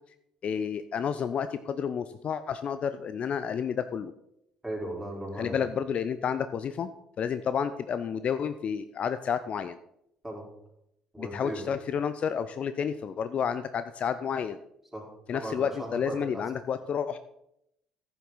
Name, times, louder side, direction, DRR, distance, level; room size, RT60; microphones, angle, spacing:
voice 1, 0.4-4.1 5.4-6.9 7.2-9.8 11.2-14.6 15.3-17.2, left 7 dB, 45° left, 12 dB, 0.5 m, -30 dB
voice 2, 4.6-5.6 10.2-10.4 11.1-11.7 14.9-15.0 15.3-16.4, right 1 dB, 5° right, -3 dB, 4.4 m, -37 dB
14.5 x 7.1 x 4.0 m, 0.80 s
figure-of-eight pair, 50°, 3 cm